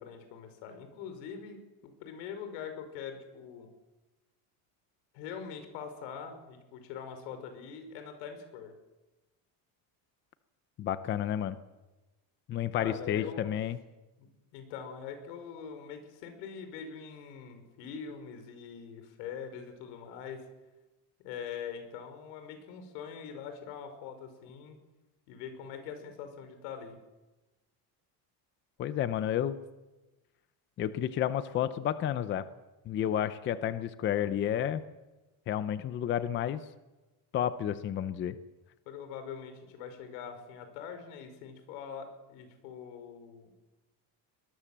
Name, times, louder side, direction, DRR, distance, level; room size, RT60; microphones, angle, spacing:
voice 1, 0.0-1.6 1.8-3.7 5.1-8.7 12.7-13.5 14.2-14.3 14.5-20.5 21.2-24.8 25.3-27.0 38.9-43.6, left 7 dB, 90° left, 7 dB, 5.5 m, -43 dB
voice 2, 10.8-11.6 12.5-13.8 28.8-29.6 30.8-32.5 32.9-34.8 35.5-36.6 37.3-38.4, left 10 dB, 25° left, 13 dB, 0.7 m, -31 dB
22.5 x 20.5 x 7.5 m, 1.1 s
cardioid pair, 180°, 47 cm